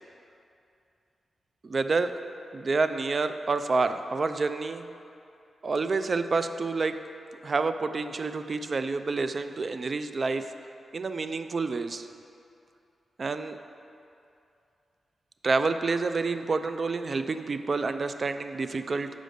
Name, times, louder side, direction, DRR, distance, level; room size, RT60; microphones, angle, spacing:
voice 1, 1.6-2.2 2.5-4.9 5.6-7.1 7.4-10.5 10.9-12.1 13.2-13.6 15.4-19.1, right 4 dB, 50° right, 10 dB, 0.3 m, -28 dB
5.2 x 5.0 x 6.4 m, 2.6 s
cardioid pair, 60°, 0 cm